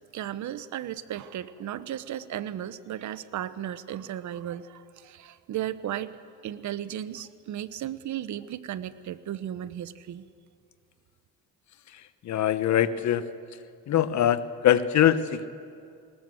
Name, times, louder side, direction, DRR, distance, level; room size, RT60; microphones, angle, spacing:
voice 1, 0.1-6.2 6.4-10.2, right 11 dB, 70° right, 14 dB, 0.9 m, -35 dB
voice 2, 12.2-13.2 13.9-15.5, left 10 dB, 65° left, 12 dB, 1.1 m, -23 dB
20.5 x 20.0 x 7.7 m, 2.4 s
cardioid pair, 90°, 30 cm